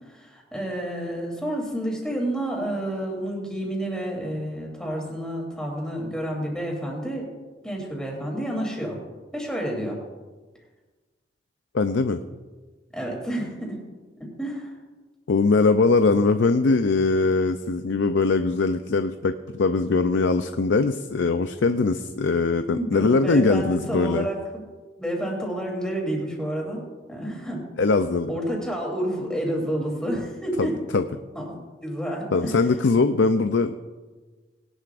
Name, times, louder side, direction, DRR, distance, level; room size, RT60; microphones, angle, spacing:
voice 1, 0.0-7.3 7.6-9.0 9.3-10.0 12.9-13.8 14.2-14.7 22.7-24.6 25.0-26.8 27.1-27.6 28.3-30.8 31.3-31.5 31.8-32.6, right 1 dB, 5° left, -2 dB, 3.2 m, -29 dB
voice 2, 11.7-12.2 15.3-24.3 27.8-28.3 30.6-31.0 32.3-33.8, left 3 dB, 85° left, 8 dB, 0.5 m, -21 dB
20.0 x 11.5 x 2.5 m, 1.3 s
head